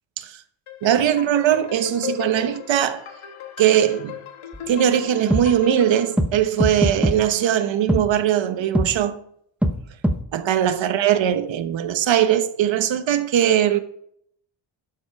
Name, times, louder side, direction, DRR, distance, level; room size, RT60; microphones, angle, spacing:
sound 1, 0.7-6.1, left 11 dB, 90° left, 1.6 m, -37 dB
voice 1, 0.8-3.0 3.6-4.2 4.7-9.2 10.3-13.8, right 10 dB, 65° right, 1.1 m, -20 dB
sound 2, 4.5-4.6 5.3-5.4 6.2-6.3 6.6-7.2 7.9-8.0 8.7-8.9 9.6-9.8 10.0-10.2, equal, 5° right, 0.9 m, -20 dB
12.0 x 7.9 x 4.7 m
wide cardioid pair, 145°, 48 cm